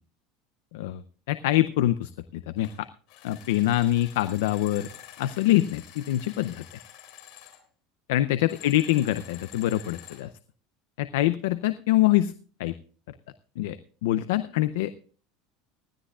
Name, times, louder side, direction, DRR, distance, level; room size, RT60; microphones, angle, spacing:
voice 1, 0.7-2.9 3.2-4.9 5.2-6.6 8.1-10.3 11.0-12.3 12.6-12.7 13.1-13.2 13.6-13.8 14.0-14.9, left 14 dB, 90° left, 12 dB, 0.6 m, -25 dB
sound 1, 2.6-2.8 3.1-7.6 8.4-10.3, left 12 dB, 65° left, 3.7 m, -48 dB
20.0 x 13.0 x 2.4 m, 0.40 s
supercardioid pair, 150°, 0 cm